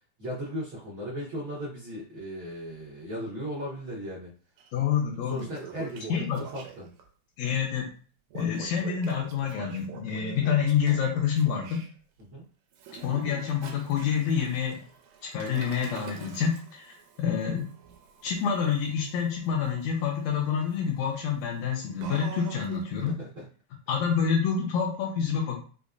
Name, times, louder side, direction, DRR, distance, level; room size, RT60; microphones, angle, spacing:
voice 1, 0.2-4.3 5.3-6.9 12.2-12.4 23.0-23.5, equal, 65° right, -9 dB, 1.2 m, -37 dB
Toilet flush, 4.6-4.7 5.1-7.1 8.3-11.9 12.7-23.1, right 7 dB, 80° right, 1.7 m, -45 dB
voice 2, 4.7-5.5 6.1-6.4 7.4-7.9 8.4-11.8 13.0-14.8 15.3-17.7 18.2-23.1 23.9-25.6, left 7 dB, 80° left, 0 dB, 1.7 m, -27 dB
5.0 x 2.1 x 2.4 m, 0.40 s
omnidirectional pair, 3.4 m